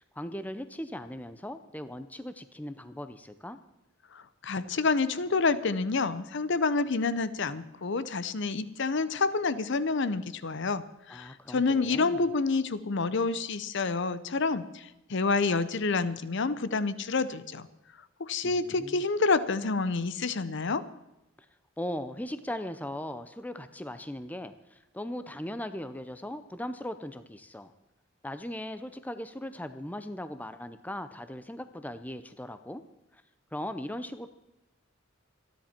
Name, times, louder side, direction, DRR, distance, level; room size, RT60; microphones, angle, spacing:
voice 1, 0.0-3.6 11.1-12.2 18.4-19.0 21.8-27.7 28.2-32.8 33.1-33.2 33.5-34.3, left 1 dB, 10° left, 11 dB, 0.6 m, -39 dB
voice 2, 4.1-17.7 18.2-20.8, left 4 dB, 60° left, 15 dB, 0.7 m, -28 dB
26.5 x 10.5 x 4.4 m, 0.93 s
head